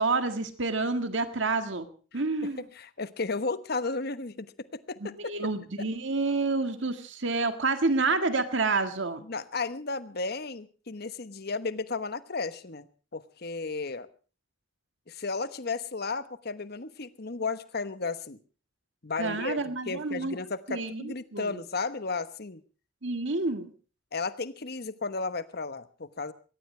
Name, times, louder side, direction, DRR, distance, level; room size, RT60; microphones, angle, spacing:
voice 1, 0.0-1.9 2.1-2.6 5.0-9.2 19.2-20.4 20.7-21.5 23.0-23.7, right 3 dB, 65° right, 8 dB, 1.8 m, -28 dB
voice 2, 2.1-5.2 9.2-12.9 13.1-14.1 15.1-18.4 19.0-22.6 24.1-26.3, left 4 dB, 50° left, 13 dB, 1.1 m, -34 dB
22.5 x 18.5 x 3.3 m, 0.37 s
head